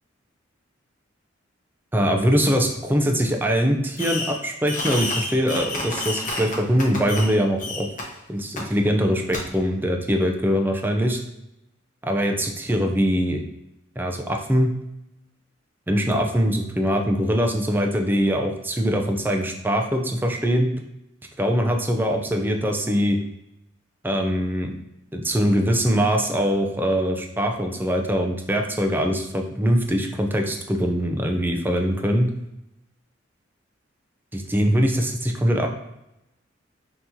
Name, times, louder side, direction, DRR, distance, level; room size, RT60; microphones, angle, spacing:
voice 1, 1.9-7.9 8.3-11.2 12.0-13.4 14.0-14.7 15.9-20.7 21.4-23.2 24.0-24.7 25.1-32.3 34.3-35.7, equal, 10° right, 3 dB, 0.5 m, -22 dB
Fireworks, 4.0-4.4 4.7-7.3 7.6-8.0 8.6-8.7 9.3-9.4, left 2 dB, 40° left, 0.9 m, -29 dB
5.7 x 2.9 x 2.7 m, 0.87 s
head